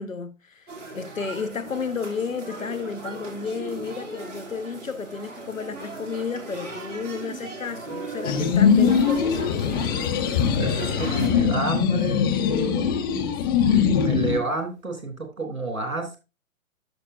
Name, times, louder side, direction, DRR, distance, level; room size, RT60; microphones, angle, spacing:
voice 1, 0.0-9.6, left 5 dB, 70° left, 1.3 m, -32 dB
sound 1, 0.7-11.3, right 3 dB, 60° right, 2.9 m, -38 dB
Guitar, 7.9-12.7, right 5 dB, 35° right, 5.6 m, -41 dB
sound 2, 8.2-14.4, left 7 dB, 15° left, 0.6 m, -22 dB
voice 2, 10.5-13.3 13.6-16.1, right 3 dB, 80° right, 3.3 m, -30 dB
13.0 x 5.9 x 2.7 m
figure-of-eight pair, 125°, 41 cm